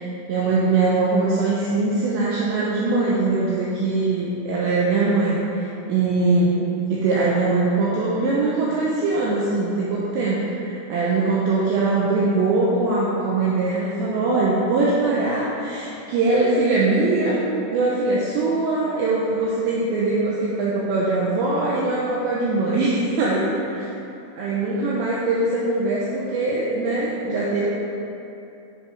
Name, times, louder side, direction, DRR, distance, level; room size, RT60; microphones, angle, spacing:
voice 1, 0.0-17.4 17.7-23.9 24.4-27.7, right 3 dB, 85° right, -6 dB, 2.6 m, -22 dB
9.2 x 5.4 x 3.2 m, 2.8 s
omnidirectional pair, 5.8 m